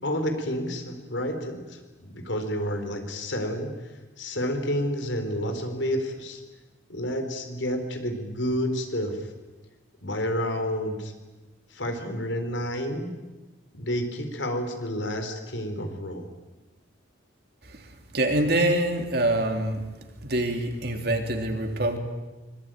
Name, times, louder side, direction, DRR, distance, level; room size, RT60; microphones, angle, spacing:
voice 1, 0.0-3.7 4.2-6.4 6.9-9.3 10.0-11.1 11.7-13.1 13.7-16.3, equal, 70° left, 6 dB, 4.2 m, -30 dB
voice 2, 17.6-19.8 20.2-22.0, right 1 dB, 55° right, 4 dB, 3.4 m, -25 dB
24.5 x 23.5 x 9.2 m, 1.2 s
head